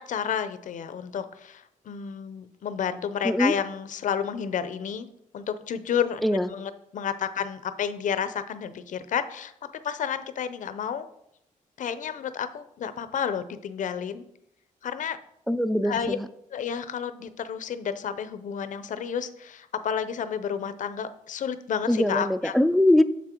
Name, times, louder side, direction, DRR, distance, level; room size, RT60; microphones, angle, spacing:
voice 1, 0.0-5.1 5.3-11.1 11.8-14.2 14.8-15.2 15.8-16.2 16.5-22.5, left 8 dB, 65° left, 12 dB, 0.6 m, -31 dB
voice 2, 15.5-16.3 21.9-23.0, left 1 dB, ahead, 11 dB, 0.4 m, -22 dB
7.3 x 6.1 x 4.4 m, 0.76 s
cardioid pair, 110°, 14 cm